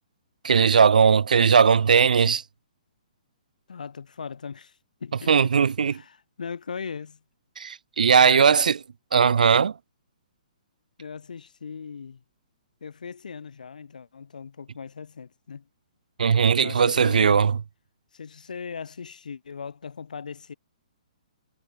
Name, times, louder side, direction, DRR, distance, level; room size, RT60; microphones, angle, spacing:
voice 1, 0.4-2.4 5.3-5.9 7.6-8.8 9.1-9.7 16.2-17.5, right 6 dB, 80° right, 0.4 m, -18 dB
voice 2, 3.7-5.4 5.8-7.2 8.2-8.6 11.0-12.2 12.8-15.7 16.6-17.5 18.1-20.5, left 6 dB, 80° left, 7.1 m, -39 dB
hypercardioid pair, 145°, 4 cm